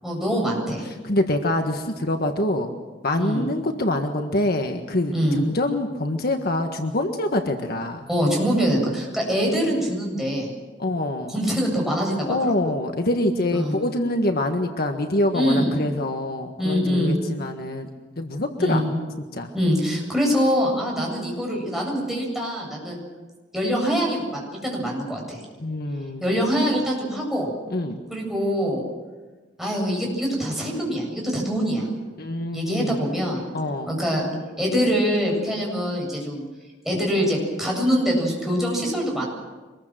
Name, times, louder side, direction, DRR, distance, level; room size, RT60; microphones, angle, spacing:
voice 1, 0.0-0.9 3.2-3.5 5.1-5.4 8.1-10.5 11.3-12.4 13.5-13.7 15.3-15.8 16.6-17.2 18.6-18.9 19.5-23.0 23.5-25.4 26.2-27.5 28.1-28.8 29.6-31.9 32.5-33.4 33.9-34.3 34.6-36.4 36.8-39.3, equal, ahead, -2 dB, 7.9 m, -24 dB
voice 2, 1.0-2.8 3.0-8.1 10.8-11.3 12.2-17.9 18.2-18.8 19.3-19.5 25.6-26.2 27.7-28.0 32.2-33.0 33.5-33.9, left 1 dB, 55° left, 5 dB, 1.6 m, -25 dB
25.0 x 21.5 x 7.7 m, 1.2 s
head